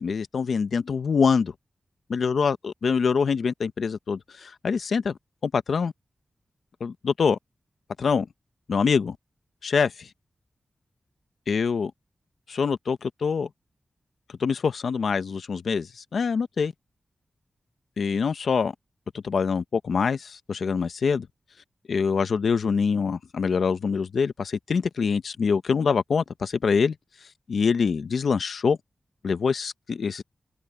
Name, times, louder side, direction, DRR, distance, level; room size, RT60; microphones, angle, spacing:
voice 1, 0.0-1.5 2.1-5.9 6.8-7.4 8.0-8.3 8.7-9.2 9.6-10.1 11.5-11.9 12.5-13.5 14.4-16.7 18.0-18.7 19.2-21.3 21.9-26.9 27.5-28.8 29.2-30.2, left 5 dB, 85° left, 0.9 m, -25 dB
wide cardioid pair, 105°, 0 cm